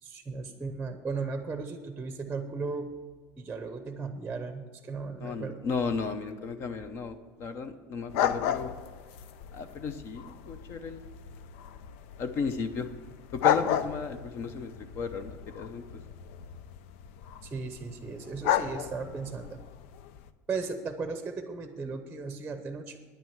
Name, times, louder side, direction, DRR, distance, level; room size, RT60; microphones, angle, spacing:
voice 1, 0.0-2.9 3.4-5.7 17.4-19.6 20.5-23.0, right 4 dB, 10° right, 7 dB, 0.8 m, -36 dB
voice 2, 5.2-8.7 9.5-11.0 12.2-12.9 13.3-15.8, left 5 dB, 40° left, 10 dB, 0.7 m, -34 dB
sound 1, 8.1-20.3, left 10 dB, 85° left, 0.6 m, -34 dB
10.0 x 9.3 x 7.2 m, 1.5 s
cardioid pair, 160°, 7 cm